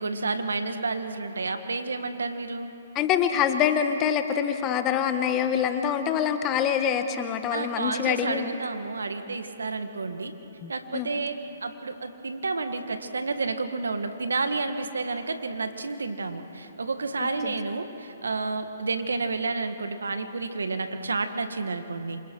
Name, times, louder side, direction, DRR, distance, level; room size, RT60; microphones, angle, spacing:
voice 1, 0.0-2.7 7.5-10.3 10.7-22.2, right 3 dB, 90° right, 8 dB, 1.7 m, -30 dB
voice 2, 2.9-8.5 10.6-11.1 17.2-17.5, left 8 dB, 25° left, 8 dB, 1.3 m, -25 dB
28.0 x 26.5 x 4.7 m, 2.9 s
hypercardioid pair, 145°, 0 cm